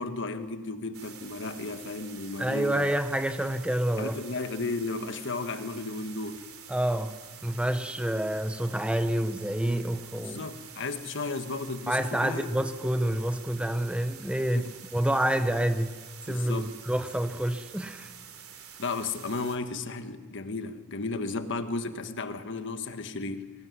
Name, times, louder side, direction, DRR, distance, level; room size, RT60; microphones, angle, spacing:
voice 1, 0.0-2.9 4.0-6.5 10.2-12.5 14.5-14.7 16.3-16.7 18.8-23.5, left 3 dB, 60° left, 1.5 m, -34 dB
sound 1, 0.9-19.6, right 8 dB, 85° right, 3.0 m, -47 dB
voice 2, 2.4-4.2 6.7-7.1 7.4-10.4 11.9-14.7 14.9-15.9 16.2-18.1, right 1 dB, 5° right, 0.9 m, -28 dB
21.5 x 19.0 x 9.7 m
head